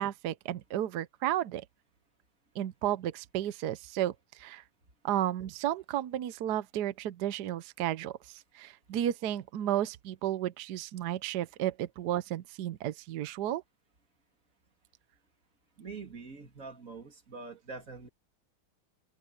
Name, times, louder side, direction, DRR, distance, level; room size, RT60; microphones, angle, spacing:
voice 1, 0.0-1.6 2.5-4.6 5.0-13.6, right 12 dB, 65° right, 1.0 m, -33 dB
voice 2, 15.8-18.1, right 4 dB, 40° right, 2.9 m, -44 dB
omnidirectional pair, 2.3 m